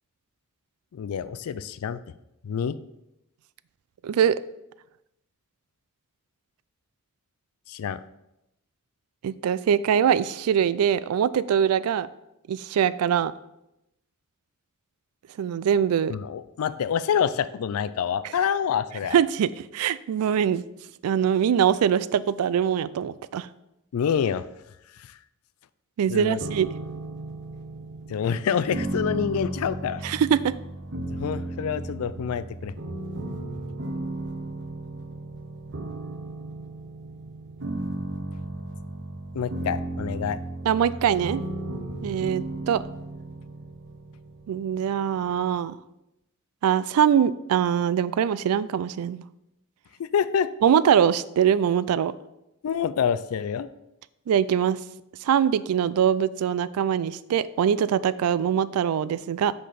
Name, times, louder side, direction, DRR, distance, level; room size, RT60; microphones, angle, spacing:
voice 1, 0.9-2.0 2.4-2.8 7.7-8.0 16.1-19.2 23.9-24.4 25.0-25.1 26.1-26.4 28.1-30.0 31.2-32.7 39.3-40.4 50.0-50.5 52.6-53.7, left 7 dB, 80° left, 15 dB, 0.4 m, -27 dB
voice 2, 4.0-4.4 9.2-12.1 12.5-13.3 15.4-16.2 19.1-20.6 21.0-23.5 26.0-26.7 30.0-30.5 40.6-41.4 42.0-42.8 44.5-45.8 46.6-49.2 50.6-52.1 54.3-54.8 55.2-59.5, right 8 dB, 85° right, 18 dB, 0.3 m, -23 dB
sound 1, 26.4-45.4, right 2 dB, 55° right, 0.8 m, -35 dB
5.1 x 4.1 x 5.7 m, 0.88 s
head